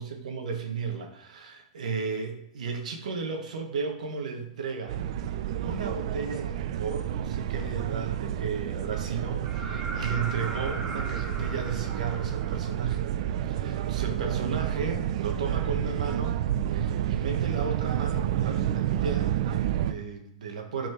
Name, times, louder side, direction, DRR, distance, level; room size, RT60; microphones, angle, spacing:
voice 1, 0.0-5.0 5.6-13.1 13.4-16.4 16.7-20.9, right 5 dB, 85° right, 4 dB, 1.4 m, -34 dB
sound 1, 4.9-19.9, right 11 dB, 60° right, 0.4 m, -30 dB
sound 2, 9.4-13.2 15.1-15.2, right 2 dB, 30° right, 1.3 m, -39 dB
6.4 x 4.4 x 4.5 m, 0.75 s
supercardioid pair, 155°, 4 cm